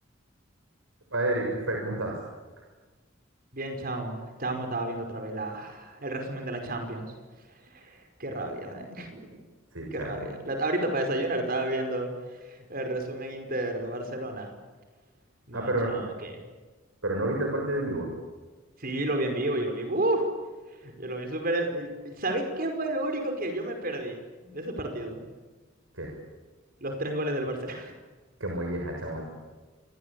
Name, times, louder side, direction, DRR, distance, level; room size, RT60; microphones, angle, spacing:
voice 1, 1.1-2.2 9.7-10.3 15.5-16.0 17.0-18.1 25.9-26.1 28.4-29.3, right 1 dB, 85° right, 1 dB, 6.5 m, -30 dB
voice 2, 3.5-7.1 7.6-9.3 9.9-14.5 15.5-16.3 18.8-20.3 20.8-25.2 26.8-27.9, right 1 dB, 50° right, 5 dB, 5.3 m, -31 dB
28.5 x 24.0 x 8.5 m, 1.3 s
head